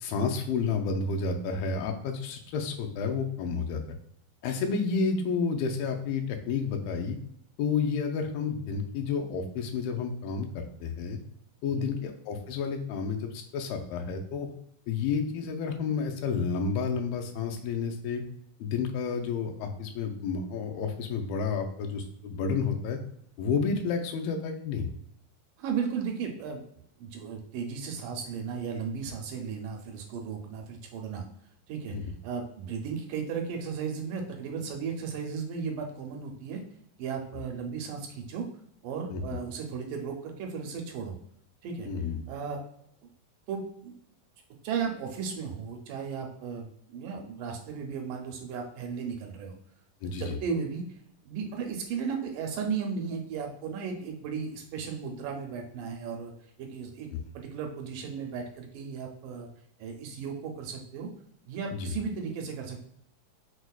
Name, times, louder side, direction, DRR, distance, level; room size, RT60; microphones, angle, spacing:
voice 1, 0.0-3.8 4.4-7.2 7.6-11.2 11.6-14.5 14.9-18.2 18.6-23.0 23.4-24.9 31.9-32.0 39.1-39.2 41.9-42.2 50.0-50.4 57.1-57.2 61.7-61.9, left 5 dB, 85° left, 4 dB, 2.3 m, -30 dB
voice 2, 25.6-26.6 27.0-31.2 31.7-32.0 32.2-36.6 37.0-38.5 38.8-41.2 41.6-41.9 42.3-42.6 43.0-43.1 43.5-43.9 44.6-49.5 50.2-50.8 51.3-56.3 56.6-57.1 57.4-59.5 59.8-61.1 61.5-62.8, right 6 dB, 80° right, 2 dB, 2.1 m, -35 dB
5.9 x 2.1 x 2.2 m, 0.69 s
omnidirectional pair, 3.9 m